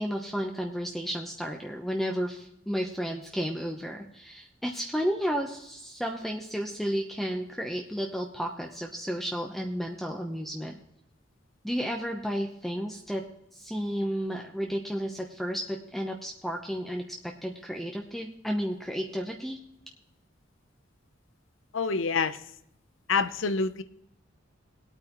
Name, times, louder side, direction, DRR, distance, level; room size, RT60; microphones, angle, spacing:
voice 1, 0.0-10.8 11.6-13.2 13.5-17.0 17.4-19.6, equal, ahead, 1 dB, 0.8 m, -32 dB
voice 2, 21.7-22.4 23.1-23.8, left 4 dB, 85° left, 13 dB, 0.7 m, -26 dB
20.5 x 8.8 x 3.0 m, 0.78 s
head